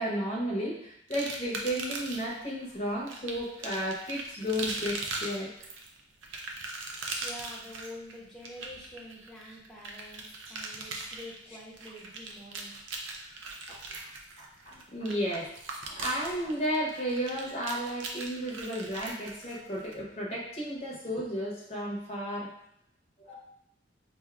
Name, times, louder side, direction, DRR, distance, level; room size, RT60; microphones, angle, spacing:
voice 1, 0.0-5.5 6.9-7.0 13.7-14.1 14.4-15.5 15.9-22.5 23.3-23.4, equal, 30° left, -4 dB, 0.7 m, -33 dB
sound 1, 1.1-2.4 3.1-19.9, right 3 dB, 85° right, 0.5 m, -40 dB
voice 2, 7.2-12.8, left 1 dB, 5° left, -6 dB, 0.7 m, -47 dB
4.7 x 2.6 x 2.3 m, 0.74 s
head